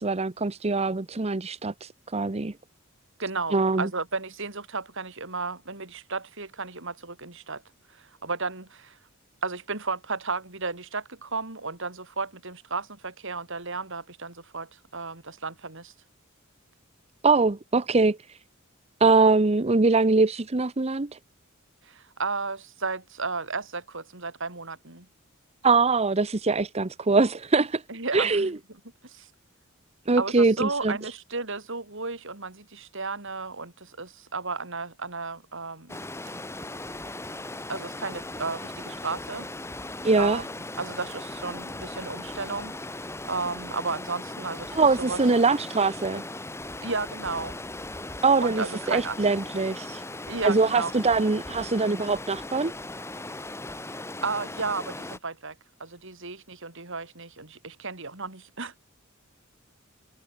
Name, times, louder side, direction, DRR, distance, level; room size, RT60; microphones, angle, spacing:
voice 1, 0.0-2.5 3.5-3.9 17.2-18.2 19.0-21.2 25.6-27.8 28.1-28.5 30.1-30.9 40.0-40.4 44.7-46.2 48.2-50.0 50.4-52.7, right 3 dB, 30° right, 0.8 m, -23 dB
voice 2, 3.2-7.6 7.9-9.0 9.4-15.9 21.8-25.1 27.9-28.6 29.0-29.3 30.2-36.0 37.7-39.5 40.1-40.5 40.8-42.7 43.0-45.2 46.8-47.6 48.4-49.2 50.3-50.9 54.2-58.8, right 4 dB, 65° right, 5.7 m, -33 dB
Stream, 35.9-55.2, left 2 dB, 15° left, 1.9 m, -38 dB
head